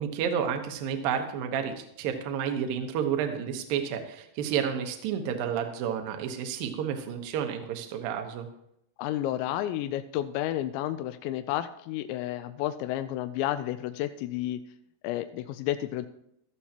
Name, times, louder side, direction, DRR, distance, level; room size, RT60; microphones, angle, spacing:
voice 1, 0.0-8.5, right 8 dB, 75° right, 5 dB, 2.2 m, -30 dB
voice 2, 9.0-14.6 15.0-16.1, left 13 dB, 85° left, 9 dB, 2.6 m, -31 dB
15.5 x 13.0 x 2.9 m, 0.76 s
omnidirectional pair, 5.7 m